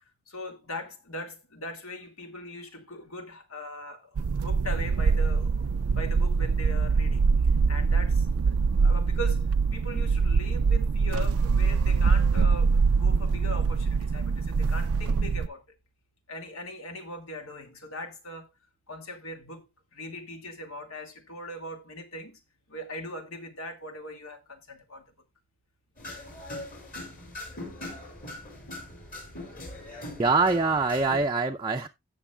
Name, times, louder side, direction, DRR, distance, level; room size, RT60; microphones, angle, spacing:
voice 1, 0.3-7.2 7.7-15.6 16.3-18.5 18.9-19.7 19.9-22.4 22.7-25.0 27.7-28.1, left 1 dB, 75° left, 2.1 m, -40 dB
sound 1, 4.2-15.5, right 5 dB, 85° right, 0.4 m, -24 dB
sound 2, 26.0-31.3, left 1 dB, 40° left, 5.0 m, -41 dB
voice 2, 30.2-31.9, right 3 dB, 20° right, 0.5 m, -24 dB
17.0 x 6.4 x 2.3 m
head